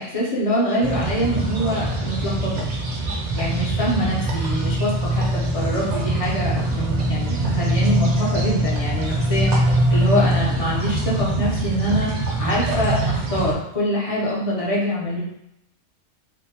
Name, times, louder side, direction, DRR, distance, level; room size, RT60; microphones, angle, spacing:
voice 1, 0.0-2.7 3.3-9.5 9.9-15.2, equal, 50° left, -5 dB, 0.4 m, -24 dB
sound 1, 0.8-13.5, right 1 dB, 75° right, 0.3 m, -23 dB
sound 2, 6.0-10.0, right 2 dB, 65° left, 1.0 m, -41 dB
2.6 x 2.0 x 2.7 m, 0.82 s
omnidirectional pair, 1.3 m